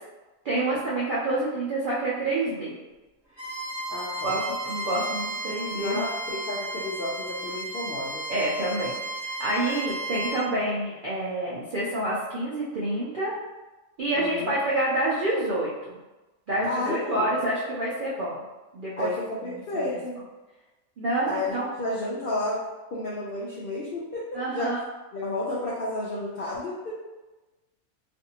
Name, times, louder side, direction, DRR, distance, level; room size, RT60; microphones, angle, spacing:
voice 1, 0.4-2.8 4.2-6.0 8.3-13.3 14.0-16.0 16.5-18.4 18.7-19.1 19.4-20.0 21.0-21.7 24.3-24.8, right 1 dB, 70° right, -7 dB, 0.4 m, -28 dB
Bowed string instrument, 3.3-10.4, right 1 dB, ahead, 1.1 m, -34 dB
voice 2, 3.9-4.4 5.7-8.2 14.1-14.6 16.6-17.3 19.0-20.2 21.3-22.6 22.9-24.7 25.1-26.9, left 2 dB, 75° left, -6 dB, 0.5 m, -31 dB
2.5 x 2.5 x 2.7 m, 1.1 s
omnidirectional pair, 1.5 m